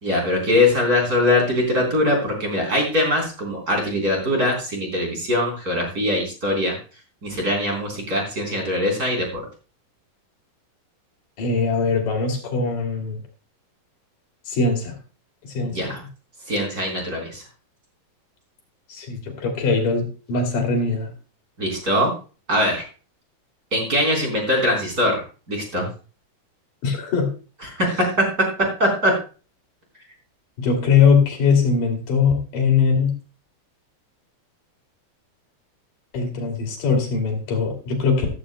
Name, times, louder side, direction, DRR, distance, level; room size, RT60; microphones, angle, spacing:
voice 1, 0.0-6.8 7.2-9.4 15.6-16.0 16.5-17.4 21.6-22.1 22.5-22.8 23.7-25.2 25.5-25.9 27.8-27.9 28.8-29.1, left 1 dB, 20° right, 1 dB, 3.7 m, -22 dB
voice 2, 11.4-13.2 14.5-15.0 15.4-15.9 18.9-21.1 26.8-27.3 27.9-28.0 30.6-33.1 36.1-38.3, left 5 dB, 50° left, 2 dB, 3.7 m, -21 dB
14.0 x 13.5 x 2.2 m, 0.35 s
omnidirectional pair, 5.5 m